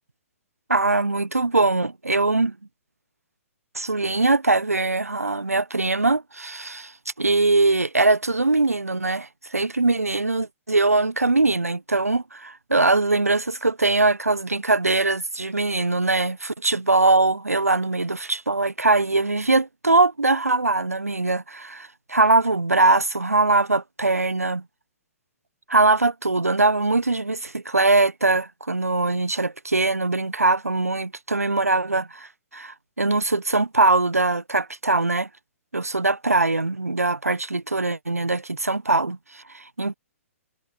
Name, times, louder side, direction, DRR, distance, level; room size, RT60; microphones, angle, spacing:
voice 1, 0.7-2.5 3.7-6.9 7.2-24.6 25.7-35.3 35.7-39.9, right 3 dB, 80° right, 1.3 m, -22 dB
figure-of-eight pair, 120°, 8 cm